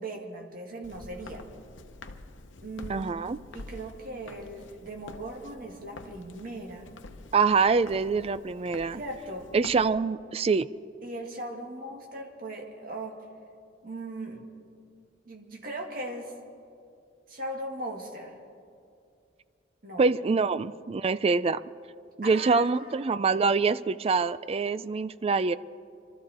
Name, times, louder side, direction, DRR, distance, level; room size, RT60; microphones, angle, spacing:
voice 1, 0.0-1.4 2.6-3.1 3.5-6.9 8.9-9.5 11.0-13.2 13.8-14.4 15.2-16.3 17.3-18.4 19.8-20.0 22.2-22.9, right 1 dB, 50° right, 1 dB, 2.0 m, -38 dB
Walk footsteps, 0.8-9.9, left 2 dB, 85° left, 0.9 m, -47 dB
voice 2, 2.9-3.4 7.3-9.0 9.5-10.7 20.0-21.6 22.2-25.6, right 4 dB, 30° right, 16 dB, 0.3 m, -25 dB
24.5 x 13.5 x 4.3 m, 2.4 s
head